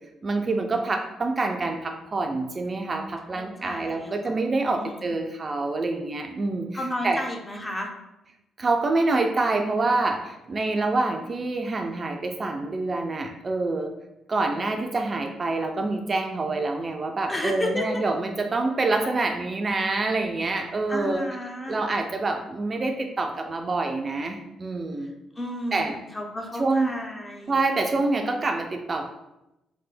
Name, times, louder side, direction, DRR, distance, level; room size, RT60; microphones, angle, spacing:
voice 1, 0.2-6.7 7.0-7.2 8.6-13.9 14.3-21.2 21.7-25.2 25.7-25.9 26.6-26.9 27.5-29.1, right 3 dB, 35° right, 4 dB, 0.3 m, -26 dB
voice 2, 3.3-4.4 4.7-5.1 6.7-7.9 17.3-18.0 20.9-21.8 25.0-25.1 25.4-27.6 28.2-28.4, left 1 dB, 20° left, 2 dB, 0.5 m, -32 dB
3.3 x 2.1 x 3.3 m, 0.92 s
cardioid pair, 90°, 0 cm